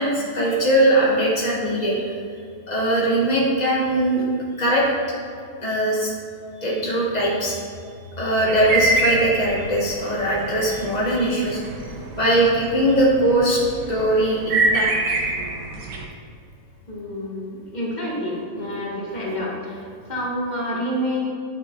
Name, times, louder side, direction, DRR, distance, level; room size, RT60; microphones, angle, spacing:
voice 1, 0.0-1.9 2.7-4.2 4.6-4.9 5.6-6.1 6.6-7.6 8.2-11.6 12.2-13.6 13.9-15.2, right 1 dB, 85° left, -5 dB, 0.3 m, -20 dB
sound 1, 8.5-16.0, right 2 dB, 85° right, 0.9 m, -26 dB
voice 2, 16.9-21.2, equal, 25° left, -4 dB, 1.0 m, -28 dB
9.3 x 8.7 x 3.8 m, 2.4 s
omnidirectional pair, 3.4 m